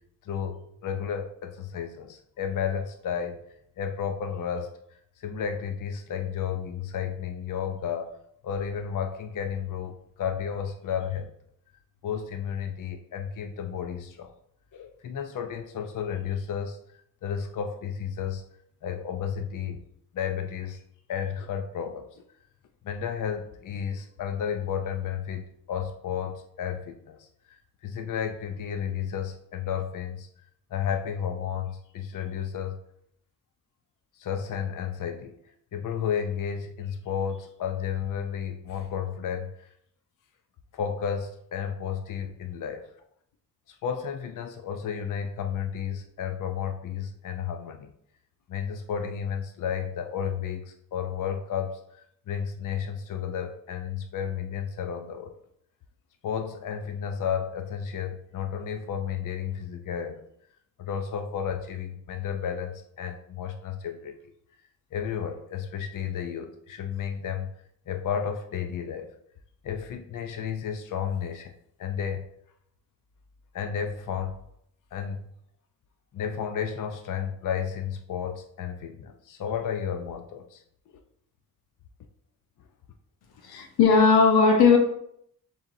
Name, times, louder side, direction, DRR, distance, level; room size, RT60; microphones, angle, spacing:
voice 1, 0.2-3.4 3.8-4.7 5.2-8.1 8.4-11.3 12.0-14.3 14.7-16.8 17.2-18.4 18.8-19.8 20.1-20.8 21.1-22.2 22.8-27.3 27.8-32.8 34.2-35.4 35.7-39.7 40.7-42.9 43.7-47.9 48.5-55.3 56.2-60.2 60.8-64.3 64.9-67.5 67.9-69.1 69.6-71.5 71.8-72.3 73.5-74.4 74.9-75.2 76.1-80.6 80.9-81.0, left 8 dB, 55° left, 0.5 m, -32 dB
voice 2, 83.4-84.8, left 5 dB, 85° left, 0.8 m, -18 dB
6.9 x 2.8 x 2.6 m
cardioid pair, 70°, 37 cm